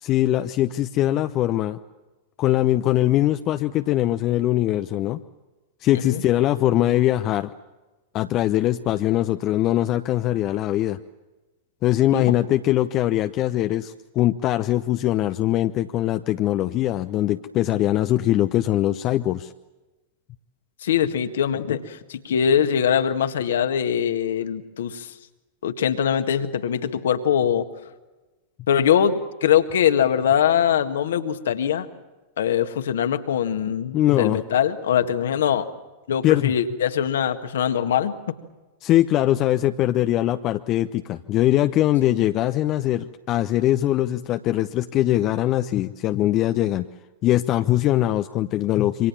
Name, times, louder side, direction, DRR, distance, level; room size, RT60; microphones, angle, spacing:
voice 1, 0.0-1.8 2.4-5.2 5.8-7.5 8.1-11.0 11.8-19.5 33.9-34.4 36.2-36.5 38.8-46.9 47.2-49.1, left 14 dB, 35° left, 9 dB, 0.9 m, -21 dB
voice 2, 20.8-25.1 25.6-27.7 28.7-31.9 32.4-35.7 36.1-38.1 42.1-42.2, left 9 dB, 60° left, 8 dB, 1.8 m, -22 dB
28.0 x 25.5 x 7.3 m, 1.1 s
figure-of-eight pair, 90°, 0 cm